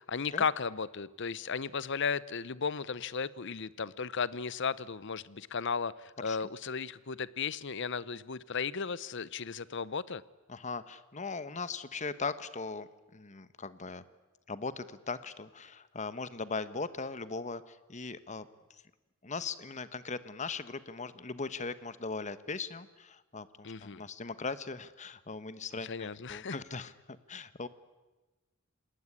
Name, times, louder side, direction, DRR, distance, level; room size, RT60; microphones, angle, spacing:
voice 1, 0.0-10.2 23.6-24.0 25.8-26.6, left 5 dB, 60° left, 19 dB, 0.8 m, -35 dB
voice 2, 10.5-14.0 14.5-18.5 19.2-26.9 27.3-27.7, left 4 dB, 35° left, 14 dB, 1.2 m, -39 dB
28.0 x 19.5 x 9.9 m, 1.1 s
head